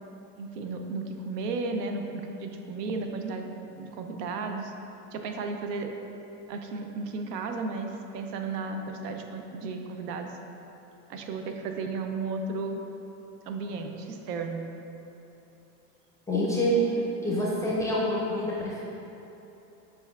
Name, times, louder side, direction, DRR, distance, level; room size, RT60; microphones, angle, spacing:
voice 1, 0.4-3.5 3.7-4.7 5.1-5.9 6.5-10.3 11.1-12.8 13.5-14.7, right 3 dB, 85° right, 4 dB, 0.6 m, -34 dB
voice 2, 16.3-16.8 17.2-18.8, equal, 5° left, -6 dB, 0.4 m, -27 dB
6.7 x 3.3 x 2.3 m, 3.0 s
supercardioid pair, 120°, 47 cm